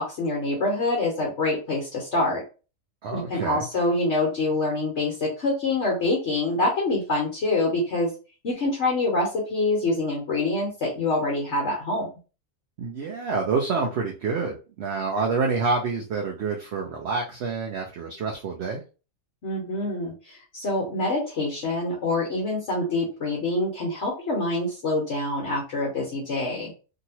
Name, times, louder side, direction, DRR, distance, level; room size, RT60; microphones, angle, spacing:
voice 1, 0.0-2.4 3.1-8.1 8.4-12.1 19.4-26.7, left 2 dB, 60° left, -3 dB, 1.2 m, -26 dB
voice 2, 3.0-3.6 12.8-18.8, right 4 dB, 60° right, 0 dB, 0.7 m, -27 dB
2.9 x 2.6 x 2.8 m, 0.34 s
omnidirectional pair, 1.5 m